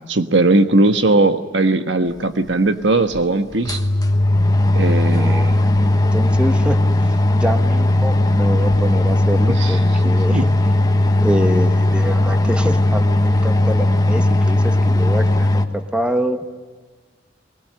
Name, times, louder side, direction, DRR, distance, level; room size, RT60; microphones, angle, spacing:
voice 1, 0.1-3.8 4.7-5.6 9.6-9.7 10.3-10.4, right 2 dB, 70° right, 8 dB, 1.5 m, -18 dB
sound 1, 2.5-2.6 3.1-3.2 3.5-15.7, left 1 dB, 20° left, 1.4 m, -17 dB
voice 2, 5.1-6.8 7.0-10.5 11.2-16.4, equal, 5° right, 7 dB, 1.3 m, -25 dB
22.5 x 21.0 x 8.9 m, 1.4 s
head